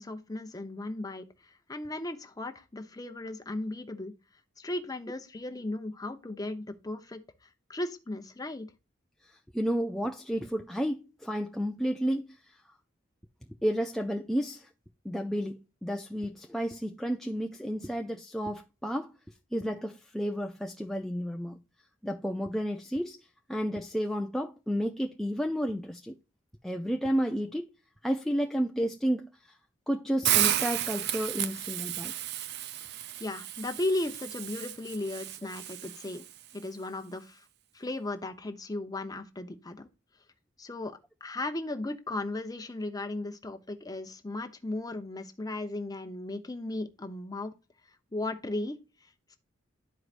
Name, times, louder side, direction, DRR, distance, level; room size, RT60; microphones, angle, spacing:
voice 1, 0.0-4.1 4.6-8.7 33.2-36.2 36.5-37.5 37.7-39.9 40.6-47.5 48.1-48.8 49.0-49.4, left 2 dB, 20° left, 0.8 m, -36 dB
voice 2, 9.2-12.6 13.6-14.7 15.0-19.1 19.5-21.6 22.0-26.2 26.6-27.7 28.0-29.5 29.9-32.1, equal, ahead, 0.4 m, -31 dB
Hiss, 30.2-36.3, right 12 dB, 55° right, 0.5 m, -32 dB
12.0 x 4.7 x 2.5 m
head